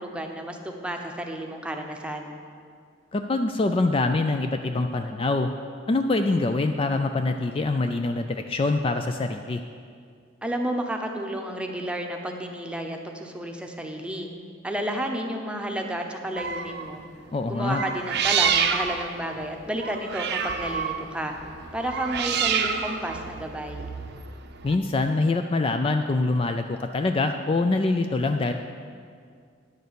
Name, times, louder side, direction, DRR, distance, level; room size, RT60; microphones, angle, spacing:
voice 1, 0.0-2.3 10.4-14.3 14.6-17.0 17.4-21.4 21.7-23.9, right 1 dB, 5° right, 3 dB, 0.8 m, -31 dB
voice 2, 3.1-5.5 5.9-9.6 17.3-17.8 24.6-28.5, left 2 dB, 30° left, 6 dB, 0.4 m, -24 dB
sound 1, 16.4-16.9 17.6-24.8, right 7 dB, 60° right, 0.7 m, -28 dB
10.5 x 6.6 x 6.8 m, 2.2 s
head